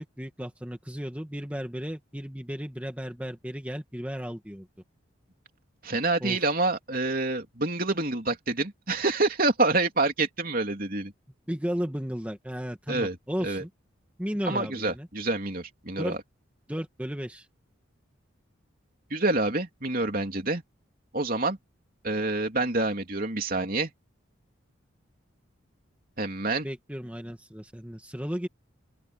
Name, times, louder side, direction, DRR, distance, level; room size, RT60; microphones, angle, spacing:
voice 1, 0.0-4.7 6.2-6.4 11.5-13.7 14.2-15.1 16.0-16.2 16.7-17.5 26.6-28.5, equal, 5° right, 2.0 m, -34 dB
voice 2, 5.8-11.1 12.9-13.2 13.4-13.6 14.5-16.2 19.1-20.6 21.1-21.6 22.0-23.9 26.2-26.7, right 2 dB, 45° right, 3.4 m, -27 dB
open air
head